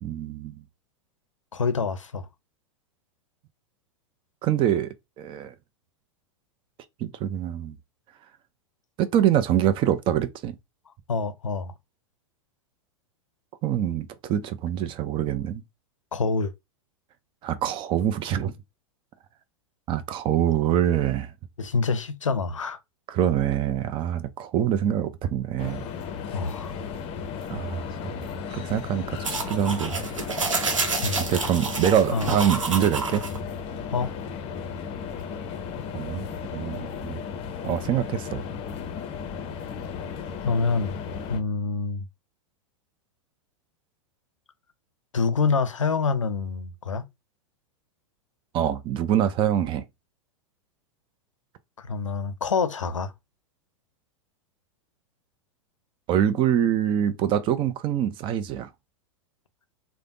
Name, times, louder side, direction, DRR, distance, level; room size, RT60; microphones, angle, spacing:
voice 1, 0.0-0.6 4.4-5.5 7.0-7.8 9.0-10.6 13.6-15.6 17.4-18.5 19.9-21.3 23.1-25.9 27.5-27.8 28.2-30.1 30.6-30.7 31.2-33.2 35.9-37.2 37.6-38.4 48.5-49.8 56.1-58.7, right 10 dB, 30° right, 0.5 m, -25 dB
voice 2, 1.5-2.3 11.1-11.7 16.1-16.5 21.6-22.8 26.3-26.7 31.0-31.4 32.1-32.3 33.9-34.1 40.4-41.0 41.3-42.1 45.1-47.0 51.8-53.1, left 4 dB, 90° left, 0.5 m, -26 dB
sound 1, 25.6-41.4, left 6 dB, 35° left, 0.6 m, -35 dB
sound 2, 29.2-33.4, right 4 dB, 85° right, 0.8 m, -29 dB
3.3 x 2.0 x 2.6 m
hypercardioid pair, 100°, 16 cm